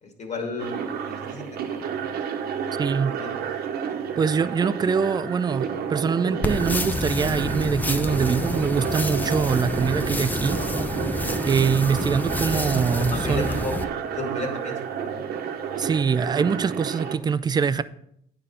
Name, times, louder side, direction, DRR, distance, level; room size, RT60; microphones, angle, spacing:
voice 1, 0.0-2.1 3.2-3.4 13.1-15.2, left 2 dB, 45° left, 2.1 m, -34 dB
sound 1, 0.6-17.2, right 7 dB, 65° right, 1.0 m, -31 dB
voice 2, 2.7-3.2 4.2-10.6 11.5-13.5 15.8-17.8, right 6 dB, 25° right, 0.4 m, -24 dB
sound 2, 6.4-13.8, left 1 dB, 10° left, 0.7 m, -28 dB
9.4 x 5.0 x 5.6 m
cardioid pair, 110°, 17 cm